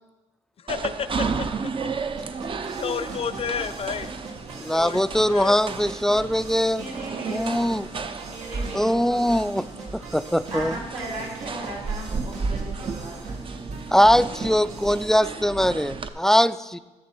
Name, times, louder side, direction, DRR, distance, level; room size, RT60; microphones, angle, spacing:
voice 1, 0.6-1.5 2.8-4.1 4.7-5.6, left 7 dB, 55° left, 13 dB, 0.6 m, -31 dB
sound 1, 0.7-16.1, right 4 dB, 45° right, 0.6 m, -33 dB
sound 2, 2.2-15.1, right 3 dB, 90° right, 1.8 m, -42 dB
voice 2, 3.1-3.7 6.7-7.8 8.2-9.3 10.5-13.6, right 2 dB, 70° right, -3 dB, 3.4 m, -37 dB
voice 3, 4.6-6.8 7.3-7.9 8.7-9.7 9.9-10.8 13.9-16.8, equal, 5° left, 14 dB, 0.3 m, -21 dB
14.5 x 7.0 x 4.3 m, 1.2 s
cardioid pair, 85°, 12 cm